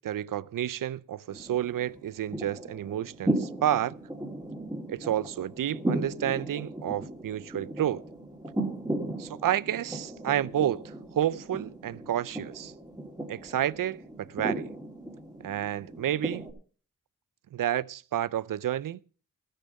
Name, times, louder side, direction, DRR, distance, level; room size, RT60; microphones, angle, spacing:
voice 1, 0.0-4.0 4.9-8.0 9.2-12.7 13.3-14.7 15.4-16.5 17.5-19.0, right 11 dB, 75° right, 0.5 m, -30 dB
sound 1, 1.3-16.5, right 1 dB, 10° right, 3.2 m, -36 dB
12.5 x 9.8 x 5.4 m
cardioid pair, 50°, 33 cm